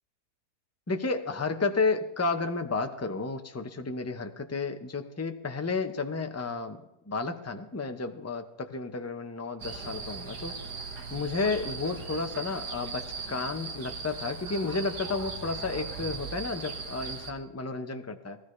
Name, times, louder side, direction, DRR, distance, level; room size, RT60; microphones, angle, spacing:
voice 1, 0.9-6.8 7.1-10.6 11.1-18.4, left 4 dB, 15° left, 6 dB, 0.5 m, -32 dB
sound 1, 9.6-17.3, right 5 dB, 80° right, 2.2 m, -39 dB
20.0 x 16.0 x 3.2 m, 0.87 s
omnidirectional pair, 1.7 m